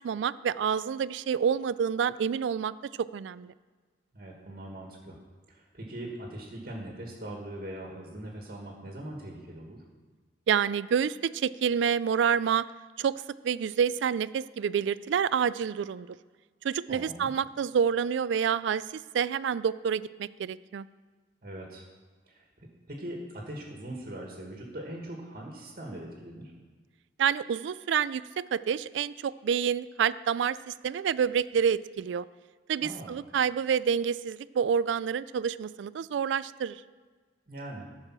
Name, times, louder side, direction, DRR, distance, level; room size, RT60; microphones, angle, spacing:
voice 1, 0.0-2.7 3.0-3.5 10.5-12.7 13.0-16.1 16.6-20.9 27.2-32.3 32.7-36.8, right 7 dB, 80° right, 18 dB, 0.3 m, -28 dB
voice 2, 4.1-5.2 5.5-9.8 16.9-17.3 21.4-21.8 22.3-26.5 32.8-33.1 37.5-37.9, right 1 dB, 50° right, 0 dB, 1.6 m, -41 dB
14.0 x 4.9 x 6.1 m, 1.4 s
head